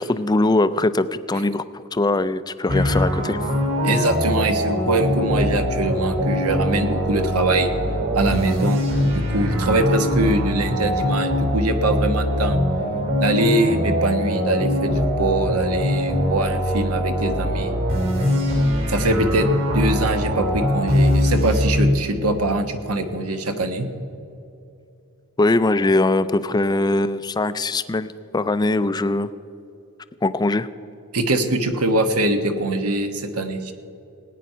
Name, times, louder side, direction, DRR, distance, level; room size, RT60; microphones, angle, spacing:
voice 1, 0.0-1.6 1.9-3.4 25.4-29.3 30.2-30.7, left 2 dB, 20° left, 14 dB, 0.4 m, -21 dB
sound 1, 2.7-21.8, equal, 60° right, 4.2 m, -22 dB
voice 2, 3.8-7.7 8.1-12.6 13.2-17.7 18.9-23.9 31.1-33.7, right 2 dB, 80° right, 7 dB, 1.2 m, -23 dB
18.5 x 9.4 x 5.6 m, 2.7 s
head